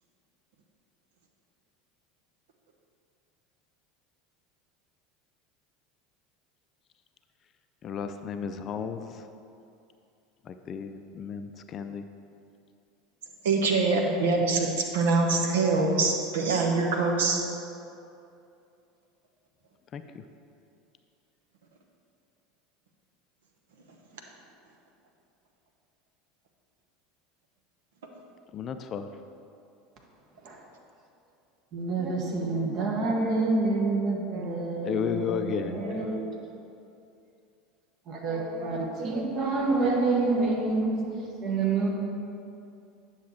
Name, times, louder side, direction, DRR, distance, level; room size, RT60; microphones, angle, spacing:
voice 1, 7.8-9.3 10.4-12.0 19.9-20.2 28.5-29.1 34.8-36.1, left 7 dB, 40° left, 9 dB, 0.5 m, -33 dB
voice 2, 13.4-17.4, right 3 dB, 70° right, 2 dB, 1.0 m, -24 dB
voice 3, 31.7-36.2 38.1-41.9, right 3 dB, 45° right, 0 dB, 1.5 m, -28 dB
9.4 x 6.4 x 4.2 m, 2.6 s
figure-of-eight pair, 75°, 0 cm